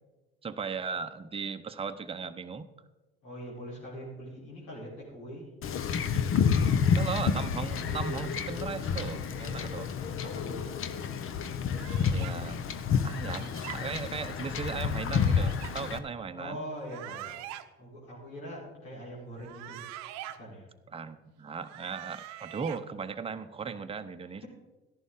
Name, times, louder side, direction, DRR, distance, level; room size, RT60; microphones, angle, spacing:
voice 1, 0.4-2.7 7.0-9.9 12.0-12.7 13.0-16.7 20.9-24.4, right 5 dB, 20° right, 7 dB, 0.8 m, -37 dB
voice 2, 3.2-5.5 6.5-7.3 10.2-10.7 16.3-17.5 17.8-19.8 20.4-20.7 24.4-24.5, equal, 80° left, -6 dB, 3.9 m, -43 dB
Wind / Ocean / Boat Water vehicle, 5.6-16.0, left 7 dB, 45° left, 0.9 m, -29 dB
sound 1, 11.7-12.4 13.2-13.8 14.9-15.7 16.8-17.6 19.3-20.4 21.5-22.8, right 14 dB, 65° right, 0.8 m, -44 dB
13.5 x 11.0 x 3.8 m, 1.2 s
hypercardioid pair, 65°, 29 cm